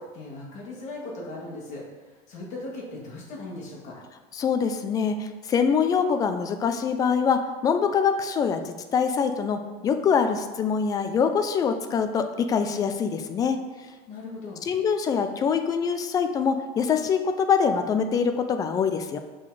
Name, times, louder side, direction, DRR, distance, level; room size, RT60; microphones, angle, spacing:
voice 1, 0.0-1.8 2.3-3.9 14.1-14.6, left 2 dB, 40° left, -3 dB, 1.8 m, -38 dB
voice 2, 4.3-13.6 14.7-19.2, left 6 dB, 20° left, 8 dB, 0.3 m, -24 dB
5.8 x 3.9 x 4.8 m, 1.4 s
cardioid pair, 170°, 17 cm